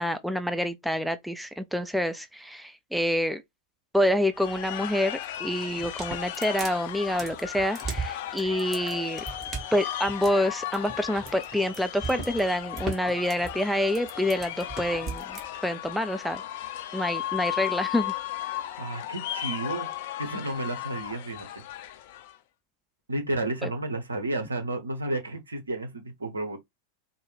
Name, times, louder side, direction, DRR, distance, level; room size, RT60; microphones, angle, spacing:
voice 1, 0.0-3.4 3.9-9.2 9.7-16.4 16.9-18.1 23.6-23.7, left 1 dB, ahead, 0.4 m, -27 dB
sound 1, 4.3-22.4, left 13 dB, 50° left, 0.5 m, -36 dB
sound 2, 5.7-15.5, right 4 dB, 25° right, 1.2 m, -37 dB
voice 2, 18.8-19.9 20.2-21.5 23.1-26.6, right 2 dB, 75° right, 1.1 m, -32 dB
4.5 x 2.3 x 3.3 m
figure-of-eight pair, 90°, 0 cm